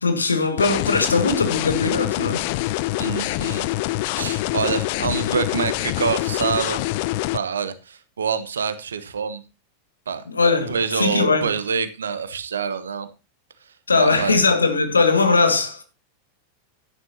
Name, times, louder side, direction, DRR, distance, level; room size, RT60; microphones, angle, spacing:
voice 1, 0.0-2.4 10.3-11.5 13.9-15.8, left 4 dB, 75° left, 1.8 m, -20 dB
sound 1, 0.6-7.4, left 18 dB, 50° left, 0.4 m, -25 dB
voice 2, 3.0-3.7 4.2-6.8 7.3-9.4 10.1-10.2 10.7-13.1 14.0-14.4, right 6 dB, 70° right, 1.2 m, -26 dB
12.0 x 11.0 x 2.8 m
figure-of-eight pair, 90°, 0 cm